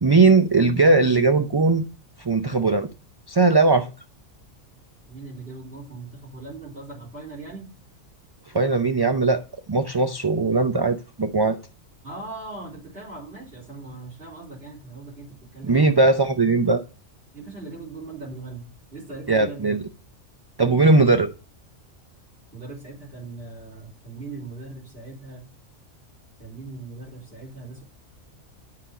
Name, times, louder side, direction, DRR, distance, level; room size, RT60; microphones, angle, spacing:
voice 1, 0.0-1.9 2.2-2.9 3.3-3.9 8.5-11.6 15.6-16.8 19.3-19.8 20.6-21.3, right 3 dB, 30° right, 8 dB, 0.4 m, -19 dB
voice 2, 5.1-7.7 12.0-16.0 17.3-19.8 22.5-25.4 26.4-27.8, right 3 dB, 55° right, -4 dB, 4.2 m, -39 dB
10.0 x 5.8 x 5.0 m, 0.33 s
omnidirectional pair, 1.3 m